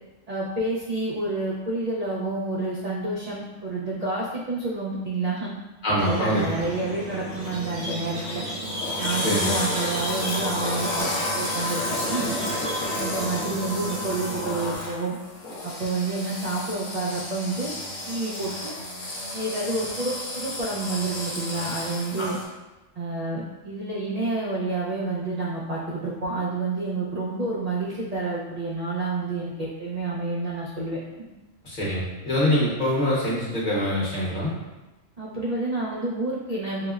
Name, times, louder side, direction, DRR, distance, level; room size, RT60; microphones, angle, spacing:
voice 1, 0.3-5.5 6.0-8.4 9.0-12.4 13.0-15.1 15.6-17.7 18.1-18.7 19.3-22.4 23.0-31.3 35.2-36.9, right 2 dB, 65° right, -5 dB, 0.4 m, -29 dB
voice 2, 5.8-6.4 9.1-9.5 22.2-22.3 31.6-34.5, equal, 40° left, -6 dB, 1.0 m, -24 dB
Squeak, 6.0-14.7, equal, 80° right, 1.3 m, -34 dB
sound 1, 8.6-22.4, left 1 dB, 65° left, 1.1 m, -32 dB
sound 2, 8.8-14.0 14.4-15.1 15.4-16.3, left 2 dB, 85° left, 1.0 m, -36 dB
4.9 x 2.1 x 2.3 m, 1.1 s
omnidirectional pair, 1.3 m